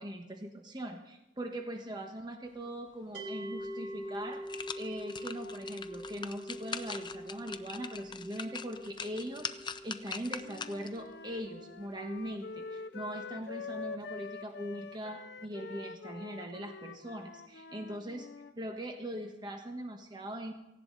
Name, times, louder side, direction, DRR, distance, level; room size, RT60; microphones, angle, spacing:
voice 1, 0.0-4.4 4.7-18.3 18.6-20.5, right 1 dB, 25° right, 3 dB, 1.4 m, -41 dB
sound 1, 3.1-14.3, equal, 75° right, 3.9 m, -45 dB
sound 2, 3.6-3.7 4.1-11.0 11.4-11.5, left 6 dB, 25° left, 0.7 m, -43 dB
Wind instrument woodwind instrument, 10.4-18.5, left 4 dB, 65° left, 0.6 m, -45 dB
18.0 x 16.0 x 4.1 m, 0.91 s
head